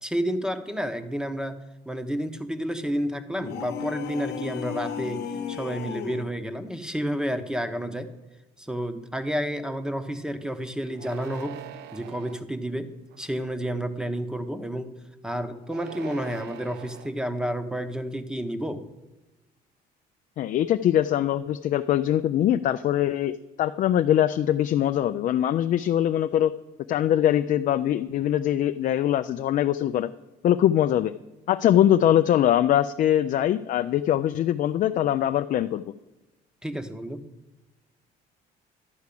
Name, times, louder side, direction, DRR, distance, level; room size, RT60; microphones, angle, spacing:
voice 1, 0.0-1.6 1.9-8.1 8.6-11.6 11.9-15.0 15.2-18.9 36.6-37.2, equal, 5° right, 10 dB, 0.8 m, -30 dB
sound 1, 3.4-6.3, left 7 dB, 75° left, 0.9 m, -34 dB
sound 2, 10.9-12.4 13.1-13.6 15.6-17.1, right 11 dB, 85° right, 0.6 m, -42 dB
voice 2, 20.4-26.5 26.9-30.1 30.4-31.1 31.5-35.8, left 11 dB, 50° left, 9 dB, 0.4 m, -22 dB
11.5 x 4.8 x 8.4 m, 1.1 s
cardioid pair, 110°, 17 cm